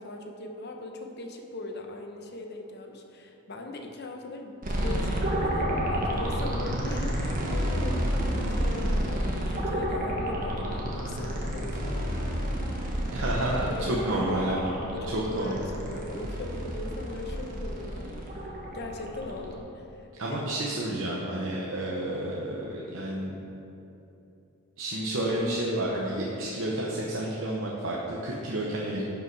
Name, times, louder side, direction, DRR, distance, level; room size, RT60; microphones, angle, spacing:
voice 1, 0.0-12.3 13.7-14.2 14.8-20.5, left 2 dB, 50° left, 3 dB, 0.9 m, -40 dB
sound 1, 4.6-19.5, equal, 40° right, 1.2 m, -30 dB
voice 2, 13.1-14.8 15.1-15.6 20.2-23.4 24.8-29.0, right 1 dB, 60° right, -4 dB, 0.9 m, -30 dB
11.0 x 5.5 x 4.7 m, 2.9 s
head